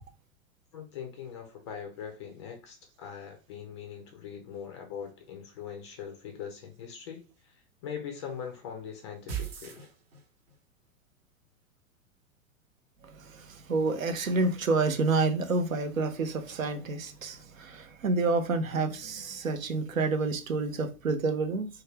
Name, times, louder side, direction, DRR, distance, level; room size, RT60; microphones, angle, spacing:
voice 1, 0.7-9.9, left 7 dB, 25° left, 0.3 m, -42 dB
sound 1, 9.3-10.6, right 8 dB, 45° right, 0.8 m, -37 dB
voice 2, 13.7-21.7, right 3 dB, 75° right, 0.6 m, -28 dB
2.5 x 2.2 x 3.2 m
figure-of-eight pair, 100°, 41 cm